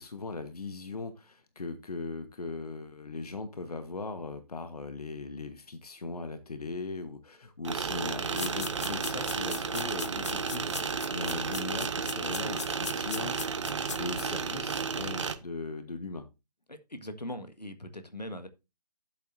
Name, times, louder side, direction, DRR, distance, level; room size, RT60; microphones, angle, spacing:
voice 1, 0.0-13.4 14.0-16.3, left 3 dB, 65° left, 1.3 m, -39 dB
sound 1, 7.6-15.4, right 5 dB, 45° right, 1.1 m, -33 dB
sound 2, 8.4-14.2, left 6 dB, 45° left, 0.5 m, -39 dB
voice 2, 16.7-18.5, left 1 dB, 85° left, 1.7 m, -40 dB
12.0 x 7.8 x 2.7 m
figure-of-eight pair, 140°, 21 cm